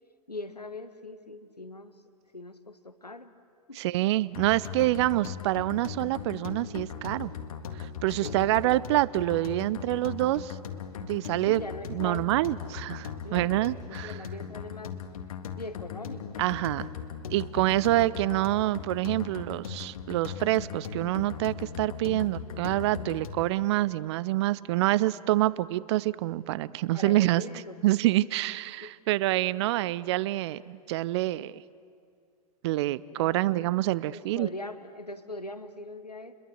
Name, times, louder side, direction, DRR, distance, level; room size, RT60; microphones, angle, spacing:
voice 1, 0.3-1.9 2.3-3.3 3.7-3.8 8.2-8.5 11.4-12.3 13.2-13.5 13.9-15.0 15.5-16.4 26.9-27.8 28.0-28.1 28.7-28.9 33.2-36.3, left 2 dB, 90° left, 12 dB, 1.3 m, -41 dB
voice 2, 3.8-7.3 7.8-10.5 11.1-11.6 11.9-14.1 16.4-16.9 17.3-27.4 27.8-31.5 32.6-34.5, right 16 dB, 45° right, 21 dB, 0.6 m, -27 dB
sound 1, 4.3-23.5, left 7 dB, 65° left, 1.9 m, -39 dB
29.5 x 22.0 x 7.9 m, 2.3 s
figure-of-eight pair, 100°, 20 cm